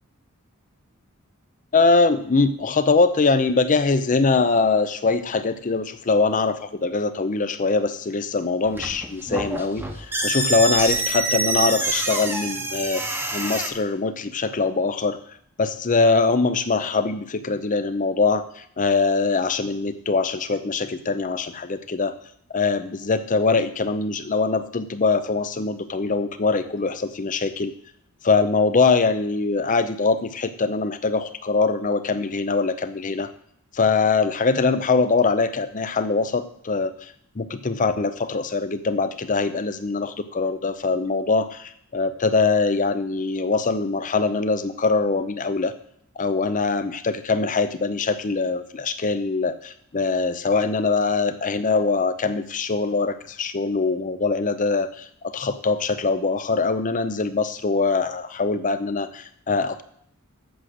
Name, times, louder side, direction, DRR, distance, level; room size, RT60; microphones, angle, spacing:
voice 1, 1.7-15.2 15.6-22.2 22.5-27.7 28.2-33.3 33.7-45.7 46.2-59.8, left 4 dB, 40° left, 11 dB, 0.6 m, -23 dB
sound 1, 8.6-13.7, right 2 dB, 10° right, 0.9 m, -26 dB
8.1 x 6.5 x 6.3 m, 0.67 s
head